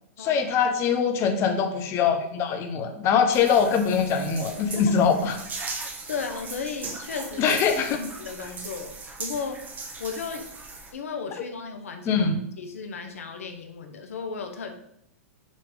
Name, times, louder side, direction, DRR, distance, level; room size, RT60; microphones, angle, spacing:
voice 1, 0.2-5.4 7.4-8.0 12.1-12.4, left 6 dB, 35° left, 6 dB, 0.9 m, -23 dB
sound 1, 3.3-10.9, right 3 dB, 25° right, 1.4 m, -38 dB
voice 2, 5.8-7.6 7.9-8.9 9.2-9.7 10.0-10.5 10.9-12.2 12.6-14.7, left 5 dB, 80° left, 5 dB, 0.9 m, -35 dB
6.5 x 3.4 x 5.0 m, 0.73 s
hypercardioid pair, 115°, 8 cm